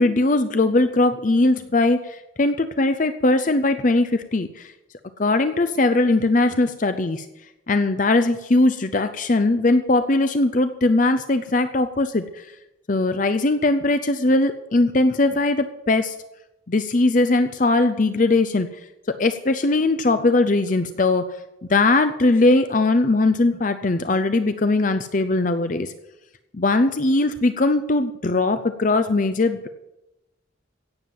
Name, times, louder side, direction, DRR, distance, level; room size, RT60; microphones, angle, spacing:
voice 1, 0.0-4.7 5.2-7.3 7.7-12.5 12.9-16.1 16.7-18.7 19.2-21.3 21.6-25.9 26.5-29.7, left 2 dB, 40° left, 10 dB, 0.6 m, -20 dB
16.5 x 7.3 x 7.7 m, 0.94 s
head